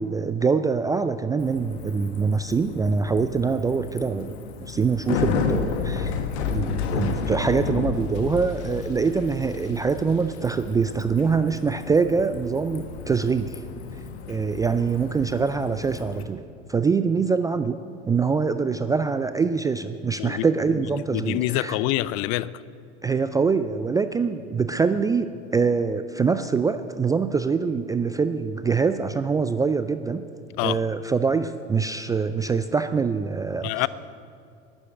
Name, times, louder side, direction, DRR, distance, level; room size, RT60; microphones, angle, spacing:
voice 1, 0.0-6.1 6.5-13.6 14.3-16.4 16.7-17.8 18.1-21.8 23.0-30.3 30.6-33.9, right 5 dB, 10° right, 0.3 m, -24 dB
Bicycle, 1.4-16.2, left 6 dB, 65° left, 1.3 m, -32 dB
voice 2, 21.1-22.6 30.6-30.8 33.6-33.9, left 16 dB, 45° left, 0.5 m, -25 dB
11.5 x 9.8 x 8.9 m
figure-of-eight pair, 75°, 35 cm